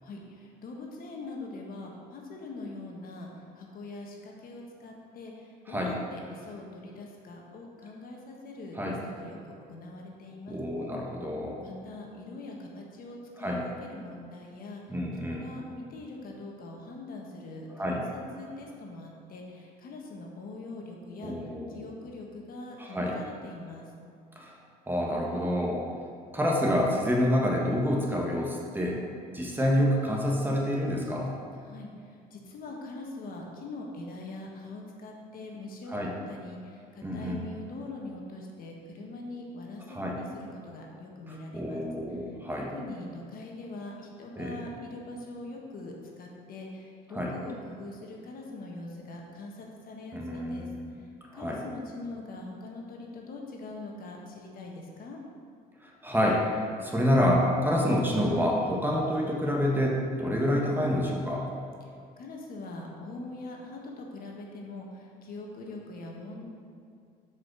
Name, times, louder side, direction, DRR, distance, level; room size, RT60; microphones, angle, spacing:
voice 1, 0.0-8.8 9.0-9.4 9.7-10.6 11.6-14.9 15.3-21.3 21.7-23.8 31.6-41.8 42.7-50.7 51.0-51.1 51.3-55.2 61.8-61.9 62.2-66.5, left 2 dB, 60° left, 0 dB, 1.5 m, -42 dB
voice 2, 10.5-11.6 13.4-13.6 14.9-15.5 17.8-18.0 21.2-21.8 22.8-23.1 24.4-24.5 24.9-25.8 26.3-29.0 29.3-31.3 35.9-36.1 37.0-37.4 39.9-40.1 41.3-42.7 44.4-44.6 47.1-47.3 50.1-50.9 51.3-51.6 55.8-56.4 56.8-61.4, equal, 10° right, -2 dB, 1.4 m, -28 dB
7.4 x 5.2 x 6.1 m, 2.4 s
cardioid pair, 110°, 17 cm